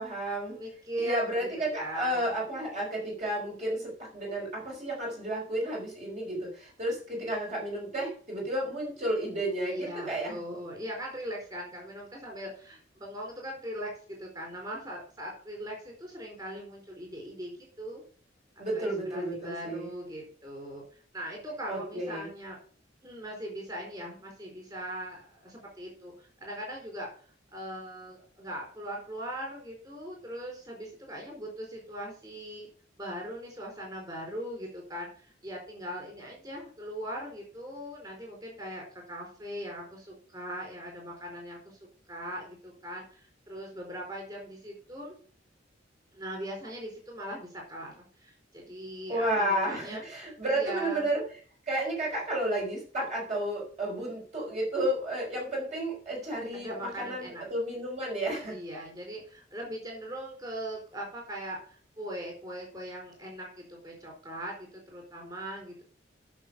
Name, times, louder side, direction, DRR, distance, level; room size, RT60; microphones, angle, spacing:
voice 1, 0.0-0.6 1.0-10.4 18.6-19.9 21.7-22.3 49.1-51.2 51.7-58.5, right 1 dB, 40° right, -2 dB, 4.3 m, -32 dB
voice 2, 0.5-2.3 9.6-18.0 18.7-22.6 23.0-27.1 27.5-32.7 33.0-41.8 42.1-45.2 46.1-51.1 56.5-57.4 58.5-65.8, equal, 20° right, -1 dB, 4.4 m, -40 dB
11.0 x 6.5 x 5.4 m, 0.43 s
head